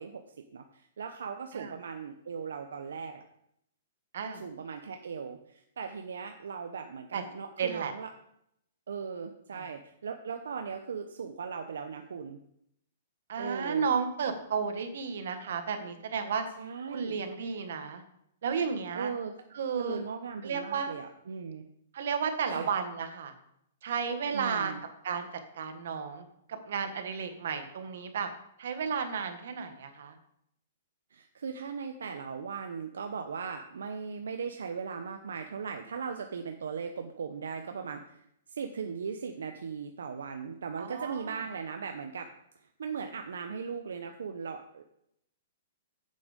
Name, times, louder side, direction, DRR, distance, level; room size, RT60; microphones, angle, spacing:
voice 1, 0.0-3.2 4.3-8.1 8.9-12.4 13.4-13.9 16.6-17.2 18.9-19.3 19.8-21.6 22.5-22.7 24.3-24.8 31.1-42.3 42.6-44.8, right 6 dB, 90° right, 6 dB, 0.7 m, -38 dB
voice 2, 7.6-7.9 9.5-9.6 13.3-16.4 16.9-18.0 18.4-19.1 19.5-20.0 20.4-20.9 21.9-23.3 23.8-24.7 25.0-25.3 25.5-26.2 26.5-28.3 28.6-30.2 40.8-41.4, right 6 dB, 65° right, 7 dB, 1.4 m, -33 dB
7.7 x 7.0 x 5.1 m, 0.74 s
hypercardioid pair, 155°, 0 cm